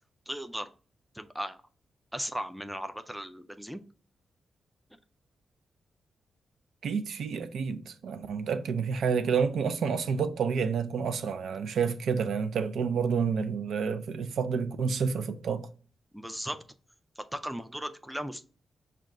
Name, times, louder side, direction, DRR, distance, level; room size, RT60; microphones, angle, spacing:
voice 1, 0.3-0.7 1.1-1.6 2.1-3.8 16.1-16.6 17.2-18.4, equal, ahead, 0.3 m, -37 dB
voice 2, 6.8-15.7, right 6 dB, 80° right, 0.4 m, -29 dB
6.2 x 2.2 x 3.6 m
wide cardioid pair, 175°, 0 cm